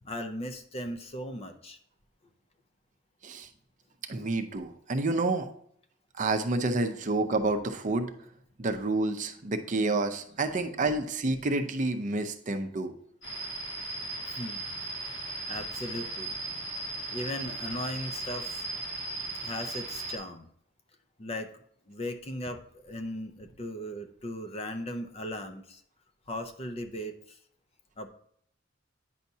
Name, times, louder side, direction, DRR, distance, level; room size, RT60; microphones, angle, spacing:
voice 1, 0.0-1.8 4.2-4.3 14.3-14.6 15.5-16.4 17.1-18.6 19.4-20.5 21.2-21.5 21.9-25.8 26.3-27.4 28.0-28.1, left 1 dB, 30° left, 7 dB, 0.6 m, -37 dB
voice 2, 4.1-5.5 6.2-8.1 8.6-12.9, right 2 dB, 40° right, 7 dB, 0.6 m, -29 dB
sound 1, 13.2-20.2, right 2 dB, 80° left, 2.0 m, -37 dB
9.2 x 5.8 x 2.7 m, 0.65 s
head